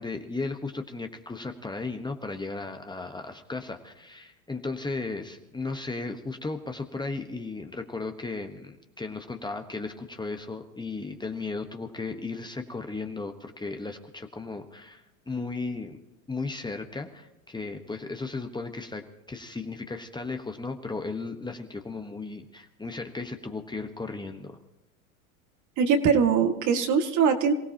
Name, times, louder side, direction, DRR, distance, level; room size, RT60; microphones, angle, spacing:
voice 1, 0.0-16.0 16.3-24.6, left 3 dB, 10° left, 5 dB, 1.2 m, -35 dB
voice 2, 25.8-27.5, right 6 dB, 45° right, 6 dB, 2.1 m, -22 dB
28.0 x 16.5 x 2.9 m, 0.91 s
hypercardioid pair, 100°, 41 cm